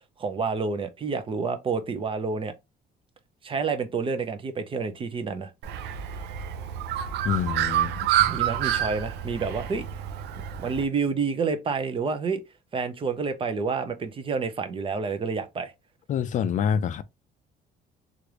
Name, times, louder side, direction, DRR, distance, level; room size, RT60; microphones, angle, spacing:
voice 1, 0.2-2.5 3.4-5.5 8.3-9.9 10.6-12.4 12.7-15.7, right 5 dB, 30° right, 0.6 m, -29 dB
Bird, 5.6-10.8, right 11 dB, 80° right, 0.5 m, -28 dB
voice 2, 7.2-8.1 16.1-17.0, left 8 dB, 50° left, 0.4 m, -26 dB
3.2 x 2.5 x 2.9 m
cardioid pair, 110°, 17 cm